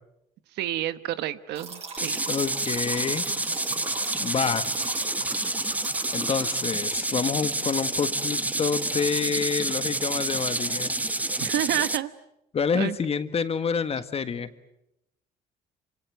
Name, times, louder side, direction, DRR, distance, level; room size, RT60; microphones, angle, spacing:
voice 1, 0.5-2.2 11.4-12.1 12.7-13.0, right 13 dB, 80° right, 13 dB, 1.2 m, -29 dB
sound 1, 1.5-7.0, right 5 dB, 35° right, 7.1 m, -40 dB
sound 2, 2.0-12.0, right 2 dB, 10° right, 1.0 m, -28 dB
voice 2, 2.3-3.2 4.2-4.7 6.1-10.9 12.5-14.5, left 6 dB, 35° left, 11 dB, 1.7 m, -28 dB
27.5 x 26.5 x 7.9 m, 0.83 s
cardioid pair, 110°, 17 cm